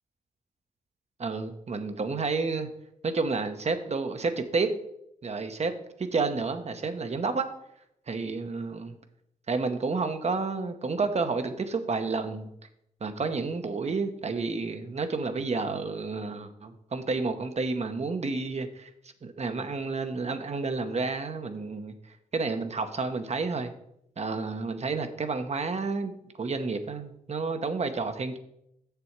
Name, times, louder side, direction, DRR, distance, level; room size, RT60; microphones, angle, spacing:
voice 1, 1.2-2.7 3.0-4.7 5.2-5.7 6.0-7.5 8.1-8.9 9.5-12.5 13.0-18.9 19.2-21.9 22.3-23.7 24.2-26.1 26.4-28.4, right 4 dB, 50° right, 8 dB, 1.0 m, -30 dB
7.0 x 6.9 x 4.6 m, 0.78 s
cardioid pair, 60°, 15 cm